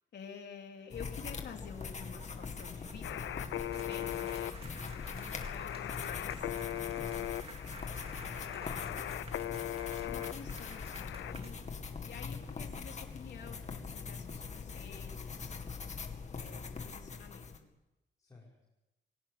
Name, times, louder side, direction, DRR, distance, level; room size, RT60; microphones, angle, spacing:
voice 1, 0.1-3.3 3.6-7.5 8.5-9.1 10.0-11.7 12.0-15.6 16.4-17.7, left 7 dB, 60° left, 2 dB, 3.5 m, -50 dB
sound 1, 0.9-17.6, left 5 dB, 35° left, 2.3 m, -42 dB
sound 2, 1.1-12.0, right 3 dB, 30° right, 2.3 m, -54 dB
sound 3, 3.0-11.3, left 13 dB, 85° left, 0.8 m, -40 dB
voice 2, 4.6-5.3 15.4-15.9 18.2-18.7, left 3 dB, 15° left, -4 dB, 5.4 m, -54 dB
21.5 x 18.5 x 8.7 m, 0.97 s
wide cardioid pair, 155°, 20 cm